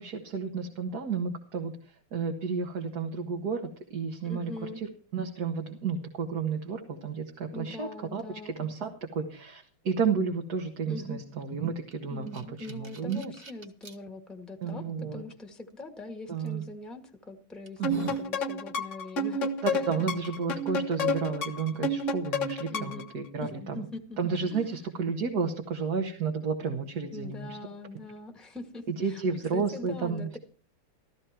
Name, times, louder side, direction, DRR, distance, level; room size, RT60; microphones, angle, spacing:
voice 1, 0.0-13.3 14.6-15.2 16.3-16.6 17.8-18.1 19.6-23.9 24.2-27.6 28.9-30.4, right 5 dB, 50° right, 2 dB, 2.0 m, -32 dB
voice 2, 4.2-4.8 7.5-8.5 10.9-11.2 12.1-14.9 15.1-19.5 22.7-23.1 23.4-24.2 24.5-24.8 27.1-29.2 29.5-30.4, left 2 dB, ahead, 3 dB, 1.7 m, -42 dB
sound 1, 11.9-14.0 14.6-14.7 16.5-16.6 17.2-17.3 17.7-18.3, right 2 dB, 35° right, 1.2 m, -45 dB
sound 2, 17.8-23.1, left 1 dB, 45° left, 1.3 m, -30 dB
15.0 x 14.0 x 4.5 m, 0.39 s
omnidirectional pair, 2.2 m